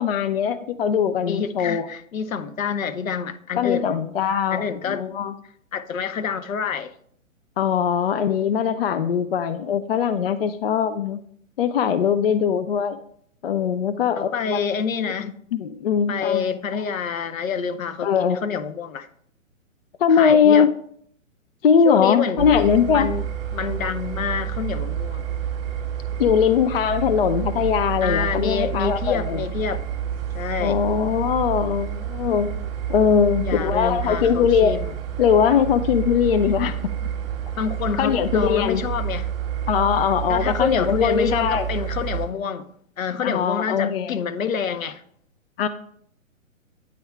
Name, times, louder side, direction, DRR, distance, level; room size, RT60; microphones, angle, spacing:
voice 1, 0.0-1.9 3.6-5.3 7.6-11.2 11.6-13.0 13.4-14.6 15.2-16.5 18.0-18.4 20.0-20.7 21.6-23.1 26.2-29.4 30.6-32.5 32.9-34.8 35.2-36.8 38.0-38.8 39.7-41.7 43.2-44.2 45.6-45.7, left 7 dB, 45° left, 0.4 m, -21 dB
voice 2, 1.3-4.0 4.5-5.0 5.7-6.9 14.2-15.3 16.1-19.1 20.1-20.7 21.8-22.5 22.9-23.3 23.5-25.3 28.0-29.8 30.3-30.8 33.4-34.9 37.6-39.3 40.3-42.7 43.0-45.0, left 6 dB, 70° left, 0.7 m, -27 dB
sound 1, 22.4-42.3, right 9 dB, 40° right, 1.8 m, -29 dB
9.2 x 3.5 x 4.5 m
figure-of-eight pair, 130°, 41 cm